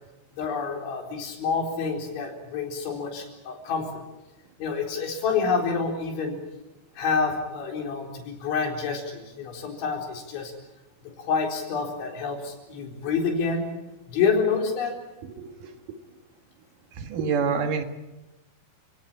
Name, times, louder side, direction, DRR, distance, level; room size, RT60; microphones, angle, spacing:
voice 1, 0.4-4.0 4.6-6.4 7.0-10.5 11.2-13.7 14.1-14.9, left 5 dB, 75° left, 2 dB, 6.5 m, -28 dB
voice 2, 17.0-17.8, right 6 dB, 55° right, 7 dB, 2.7 m, -26 dB
29.5 x 17.5 x 8.7 m, 1.0 s
omnidirectional pair, 5.3 m